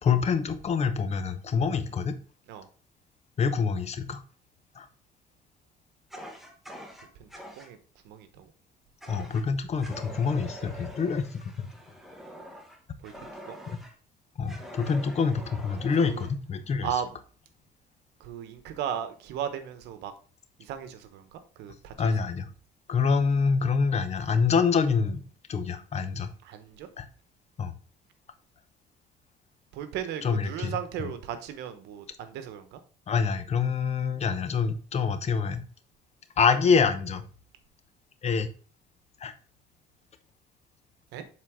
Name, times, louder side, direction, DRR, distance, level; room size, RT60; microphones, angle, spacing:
voice 1, 0.0-2.2 3.4-4.2 4.8-4.9 9.1-11.7 13.7-13.8 14.4-16.9 22.0-22.5 22.9-25.2 25.5-26.3 27.0-27.1 27.6-27.7 30.2-30.8 33.1-35.6 36.4-37.2 38.2-38.5 39.2-39.3, left 5 dB, 40° left, 11 dB, 0.8 m, -26 dB
Fire, 6.1-7.7 9.0-9.5 9.8-13.9 14.5-16.3, equal, ahead, 1.3 m, -45 dB
voice 2, 7.1-7.8 8.0-8.5 13.0-13.6 15.9-16.3 16.8-17.2 18.2-20.1 20.6-22.2 26.4-26.9 29.7-32.8 41.1-41.2, right 9 dB, 85° right, 10 dB, 1.0 m, -36 dB
7.5 x 4.0 x 3.6 m, 0.41 s
cardioid pair, 110°, 17 cm